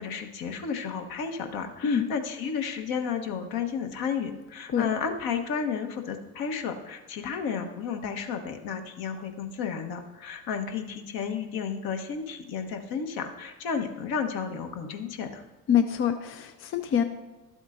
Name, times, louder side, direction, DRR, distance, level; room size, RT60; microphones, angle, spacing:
voice 1, 0.0-15.4, left 6 dB, 50° left, 5 dB, 1.2 m, -32 dB
voice 2, 15.7-17.0, left 8 dB, 30° left, 8 dB, 0.5 m, -25 dB
12.0 x 7.9 x 2.6 m, 1.1 s
hypercardioid pair, 75°, 46 cm